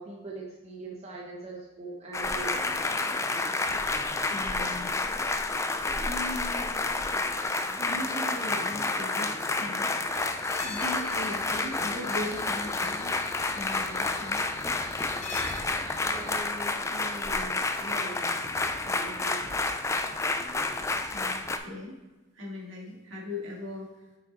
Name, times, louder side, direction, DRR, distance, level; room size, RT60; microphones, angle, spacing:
voice 1, 0.0-2.8 16.0-18.5 18.8-19.6, right 2 dB, 30° right, -3 dB, 0.9 m, -42 dB
sound 1, 2.1-21.6, left 3 dB, 15° left, 0.3 m, -30 dB
voice 2, 4.3-4.9 6.0-6.7 7.7-9.9 10.6-13.2 13.5-14.4 21.1-22.0 22.3-24.0, left 1 dB, 70° right, -2 dB, 2.0 m, -38 dB
sound 2, 10.1-16.3, left 3 dB, 35° left, 0.8 m, -43 dB
6.2 x 5.7 x 4.1 m, 1.2 s
head